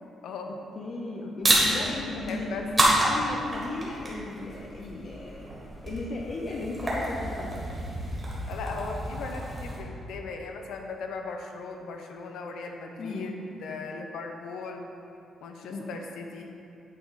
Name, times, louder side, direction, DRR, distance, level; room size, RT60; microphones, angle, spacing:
voice 1, 0.2-0.6 1.9-2.7 3.0-3.3 8.5-13.3 13.6-14.9 15.4-16.5, left 4 dB, 85° left, 3 dB, 0.7 m, -38 dB
voice 2, 0.8-5.5 5.8-7.7 13.0-13.3 15.7-15.9, left 2 dB, 35° left, -2 dB, 0.6 m, -35 dB
sound 1, 1.4-9.8, right 1 dB, 20° right, 1.4 m, -29 dB
9.1 x 3.8 x 5.6 m, 2.7 s
cardioid pair, 175°, 0 cm